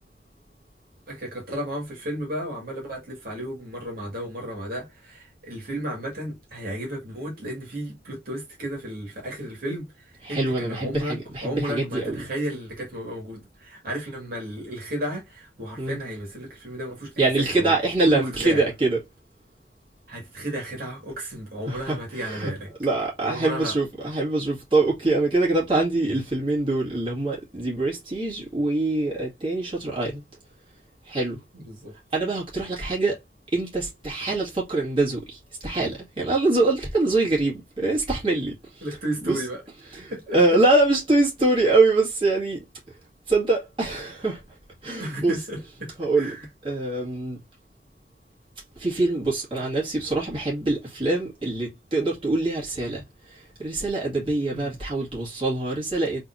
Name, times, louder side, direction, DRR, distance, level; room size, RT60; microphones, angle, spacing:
voice 1, 1.1-17.7 18.0-18.6 20.1-22.7 23.2-23.8 31.5-32.0 38.8-40.6 45.0-46.5 49.6-49.7 54.5-54.7, right 1 dB, 50° right, 2.1 m, -33 dB
voice 2, 10.2-12.3 15.8-16.0 17.2-19.0 21.7-22.5 22.8-30.2 31.1-31.4 32.1-33.2 33.5-38.9 39.2-39.4 39.9-42.6 43.3-44.4 44.8-45.4 46.0-46.4 46.6-47.4 48.8-56.2, right 2 dB, 25° right, 2.0 m, -24 dB
4.0 x 3.6 x 2.7 m
head